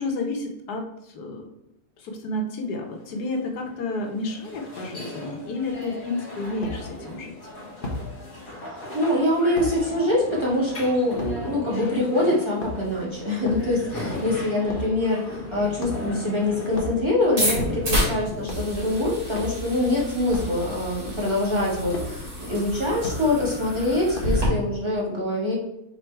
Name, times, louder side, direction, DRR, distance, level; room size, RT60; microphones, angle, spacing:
voice 1, 0.0-1.5 2.0-7.4, left 2 dB, 80° left, 2 dB, 1.5 m, -31 dB
sound 1, 3.0-20.0, left 2 dB, 65° left, 1.9 m, -39 dB
sound 2, 5.6-5.7 6.6-6.8 7.8-8.0 9.6-9.7 11.2-11.4 12.4-13.0 13.4-13.7 14.7-14.9 15.8-16.2 16.7-17.0 17.5-18.0 18.4-18.7 19.3-19.6 20.3-20.6 21.9-22.1 23.0-23.2 24.1-24.5, left 1 dB, 40° left, 1.2 m, -32 dB
voice 2, 8.4-25.5, left 1 dB, 20° right, -6 dB, 1.7 m, -24 dB
sound 3, 17.4-24.5, equal, 85° right, 3.2 m, -30 dB
5.7 x 3.8 x 4.5 m, 0.85 s
omnidirectional pair, 1.6 m